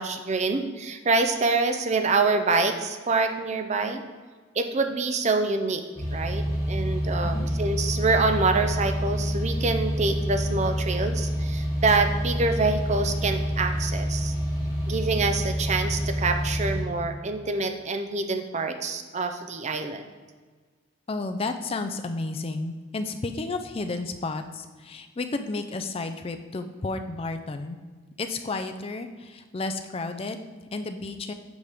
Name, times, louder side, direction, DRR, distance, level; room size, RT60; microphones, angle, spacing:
voice 1, 0.0-4.0 4.6-5.8 6.1-14.3 14.9-20.0, right 3 dB, 30° right, 7 dB, 0.4 m, -26 dB
sound 1, 6.0-16.8, equal, 5° right, 2.0 m, -27 dB
voice 2, 21.1-27.8 28.2-31.3, left 3 dB, 25° left, 7 dB, 0.4 m, -32 dB
8.0 x 4.9 x 3.5 m, 1.5 s
head